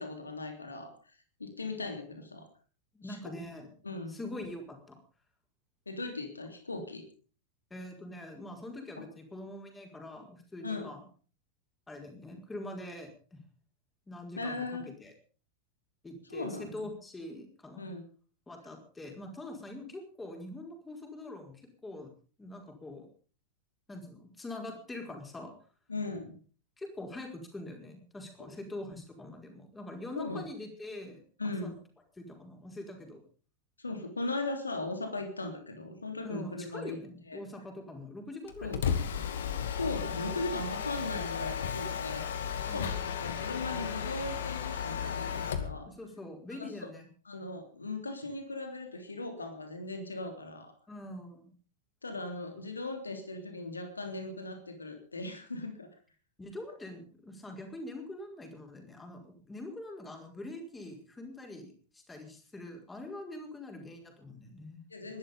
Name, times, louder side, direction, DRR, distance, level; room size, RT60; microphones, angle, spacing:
voice 1, 0.0-2.5 3.0-3.3 3.8-4.2 5.8-7.0 10.6-10.9 14.4-14.9 16.3-16.9 17.8-18.0 25.9-26.4 30.1-30.4 31.4-31.8 33.8-37.0 37.3-37.4 38.6-38.9 39.7-42.3 42.6-42.9 43.2-45.9 46.5-46.9 47.2-50.7 52.0-55.9 64.9-65.2, left 2 dB, 80° left, 6 dB, 3.3 m, -38 dB
voice 2, 2.9-3.7 4.1-5.0 7.7-11.1 11.9-13.4 14.1-15.1 16.0-17.8 18.5-22.1 22.4-23.1 23.9-25.5 26.8-31.7 32.2-33.2 36.2-39.0 42.7-43.0 45.8-47.1 50.9-51.5 52.6-52.7 56.4-65.1, left 1 dB, 10° left, 3 dB, 5.0 m, -44 dB
Mechanisms, 38.5-45.8, left 8 dB, 60° left, 2.2 m, -34 dB
21.0 x 12.5 x 5.4 m, 0.41 s
figure-of-eight pair, 90°, 0 cm